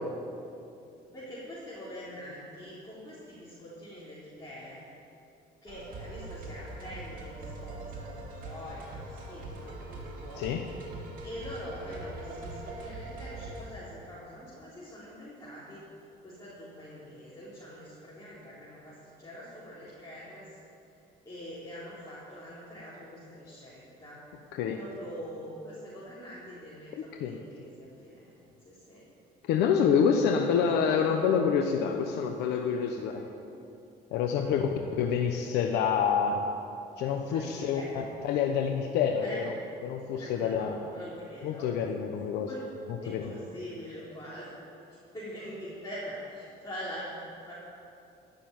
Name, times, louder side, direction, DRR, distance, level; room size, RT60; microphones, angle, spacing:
voice 1, 1.1-4.9 5.6-10.5 11.2-15.8 16.2-20.6 21.3-24.2 24.7-29.1 33.1-33.2 34.2-34.7 37.3-38.1 39.2-39.4 40.1-41.7 42.5-42.6 43.0-44.5 45.1-47.5, equal, 20° left, -10 dB, 4.0 m, -44 dB
sound 1, 5.7-13.7, right 2 dB, 55° right, 3.1 m, -42 dB
voice 2, 29.5-33.3 34.1-36.5 37.0-39.5 39.8-40.8 41.4-42.5 43.1-43.3, left 7 dB, 85° left, 4 dB, 0.9 m, -27 dB
16.0 x 6.9 x 9.4 m, 2.7 s
cardioid pair, 110°, 17 cm